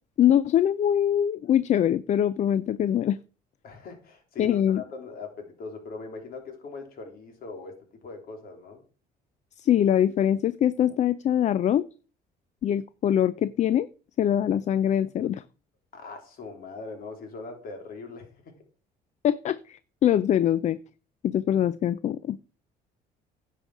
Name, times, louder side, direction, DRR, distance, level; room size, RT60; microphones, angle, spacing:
voice 1, 0.2-3.2 4.4-4.8 9.6-11.8 12.6-13.9 14.2-15.4 19.2-20.8 21.2-22.5, left 10 dB, 45° left, 17 dB, 0.4 m, -23 dB
voice 2, 3.6-7.7 8.0-8.8 15.9-18.5, left 4 dB, 60° left, 4 dB, 3.4 m, -41 dB
10.5 x 7.5 x 4.8 m, 0.37 s
cardioid pair, 110°, 17 cm